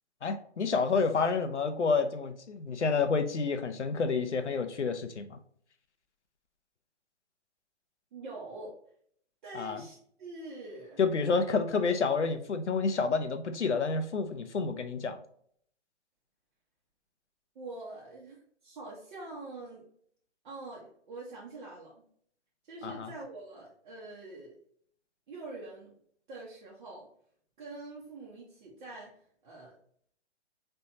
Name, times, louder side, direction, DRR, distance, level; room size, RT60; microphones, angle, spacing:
voice 1, 0.2-5.4 9.5-9.8 11.0-15.2 22.8-23.1, left 4 dB, 85° left, 8 dB, 0.7 m, -29 dB
voice 2, 8.1-8.8 9.4-11.0 17.5-19.9 20.4-21.9 22.6-24.6 25.3-25.9 26.3-27.1 27.6-29.1 29.4-29.8, right 2 dB, 45° right, -4 dB, 1.1 m, -45 dB
4.3 x 3.3 x 2.7 m, 0.63 s
figure-of-eight pair, 125°, 34 cm